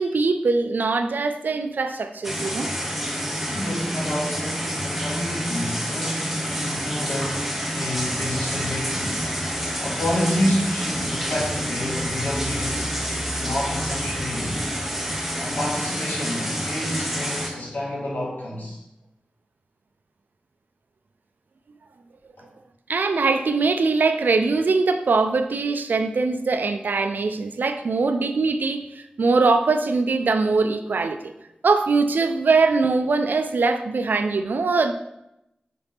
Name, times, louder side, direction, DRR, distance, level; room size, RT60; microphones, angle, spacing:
voice 1, 0.0-2.7 22.9-31.3 31.6-34.9, right 4 dB, 85° right, 8 dB, 0.4 m, -22 dB
sound 1, 2.2-17.5, equal, 5° right, 1.2 m, -28 dB
voice 2, 3.5-9.2 9.8-13.0 13.4-14.6 15.3-18.8 22.4-22.5, left 1 dB, 90° left, -5 dB, 2.0 m, -28 dB
5.7 x 5.0 x 3.5 m, 0.86 s
wide cardioid pair, 65°, 3 cm